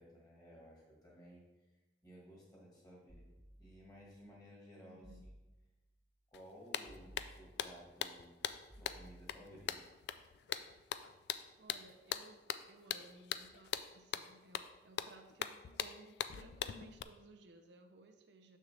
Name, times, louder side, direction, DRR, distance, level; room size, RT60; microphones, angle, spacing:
voice 1, 0.0-1.6 2.0-3.3 3.6-5.3 6.3-8.4 8.7-9.8, equal, 20° left, -3 dB, 1.7 m, -57 dB
sound 1, 3.1-4.1 5.0-5.9 6.8-7.9 8.7-9.8, equal, 25° right, 0.6 m, -59 dB
voice 2, 4.8-5.3 11.6-18.6, right 2 dB, 80° right, 5 dB, 0.6 m, -59 dB
sound 2, 6.3-6.4 6.7-17.0, left 9 dB, 70° left, 0.3 m, -42 dB
6.5 x 6.3 x 3.3 m, 1.1 s
head